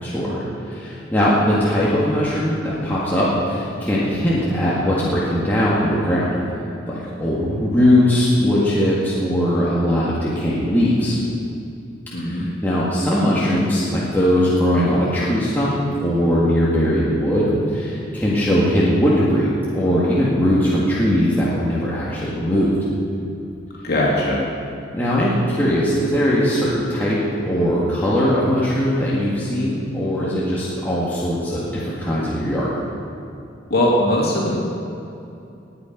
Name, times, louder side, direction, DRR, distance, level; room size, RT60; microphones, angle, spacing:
voice 1, 0.0-6.3 6.9-11.2 12.2-15.7 16.0-22.7 24.9-27.2 27.4-32.7, equal, 10° left, -8 dB, 1.9 m, -20 dB
voice 2, 12.1-12.5 23.8-24.4 33.7-34.6, left 1 dB, 55° left, -5 dB, 2.8 m, -19 dB
20.0 x 8.7 x 5.3 m, 2.7 s
head